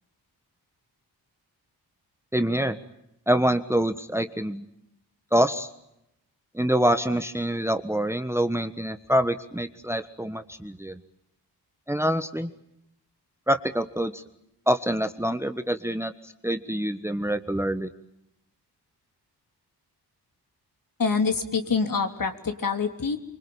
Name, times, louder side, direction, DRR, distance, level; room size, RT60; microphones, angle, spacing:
voice 1, 2.3-2.8 3.3-4.7 5.3-5.7 6.5-11.0 11.9-12.5 13.5-14.2 14.7-17.9, right 1 dB, 5° right, 11 dB, 1.3 m, -26 dB
voice 2, 21.0-23.2, left 5 dB, 55° left, 7 dB, 3.3 m, -26 dB
25.5 x 24.0 x 8.7 m, 0.83 s
cardioid pair, 70°, 40 cm